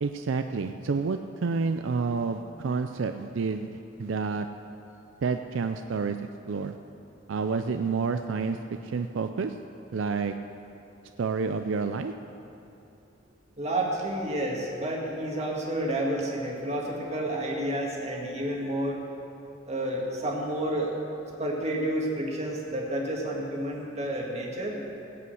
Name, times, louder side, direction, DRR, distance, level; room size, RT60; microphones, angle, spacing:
voice 1, 0.0-3.7 4.0-4.5 5.2-6.2 6.5-6.7 7.3-8.6 8.8-9.5 9.9-10.4 11.2-12.1, right 4 dB, 75° right, 8 dB, 0.4 m, -29 dB
voice 2, 13.6-19.0 19.7-20.9 21.4-24.8, right 1 dB, 35° right, -2 dB, 1.9 m, -30 dB
16.5 x 5.6 x 7.9 m, 2.8 s
head